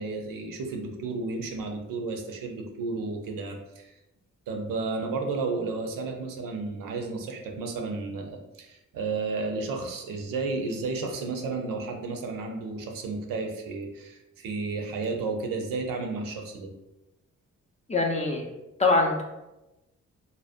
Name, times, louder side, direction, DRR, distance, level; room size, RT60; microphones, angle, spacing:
voice 1, 0.0-3.9 4.5-16.7, right 3 dB, 80° right, 3 dB, 0.5 m, -32 dB
voice 2, 17.9-18.5 18.8-19.2, left 3 dB, 20° left, 0 dB, 0.4 m, -23 dB
2.5 x 2.0 x 2.4 m, 0.96 s
cardioid pair, 65°, 33 cm